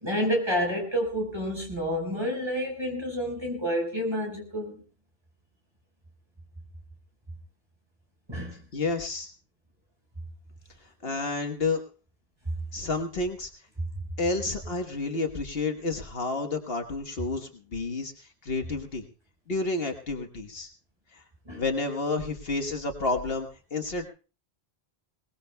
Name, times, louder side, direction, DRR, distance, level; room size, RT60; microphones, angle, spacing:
voice 1, 0.0-4.8 8.3-8.6 11.0-11.1 21.4-21.6, equal, 25° right, 1 dB, 4.8 m, -29 dB
voice 2, 8.7-9.3 11.0-11.8 12.7-13.5 14.2-19.0 19.5-20.7 21.1-21.2 21.5-24.0, left 3 dB, 65° left, 4 dB, 1.5 m, -30 dB
22.0 x 19.0 x 2.2 m, 0.35 s
omnidirectional pair, 1.1 m